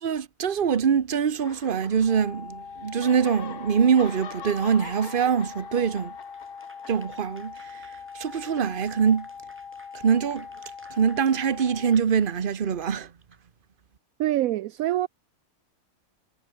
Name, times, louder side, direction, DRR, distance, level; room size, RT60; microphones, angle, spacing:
voice 1, 0.0-6.1 6.9-7.8 8.1-9.3 10.0-10.5 10.9-13.1, right 7 dB, 40° right, 1.1 m, -24 dB
sound 1, 1.4-2.5 2.8-7.8, left 7 dB, 85° left, 2.0 m, -44 dB
sound 2, 2.1-11.9, left 6 dB, 60° left, 2.0 m, -42 dB
Applause / Crowd, 6.2-13.4, equal, 10° right, 5.4 m, -56 dB
voice 2, 14.2-15.1, right 14 dB, 75° right, 1.0 m, -25 dB
omnidirectional pair, 1.5 m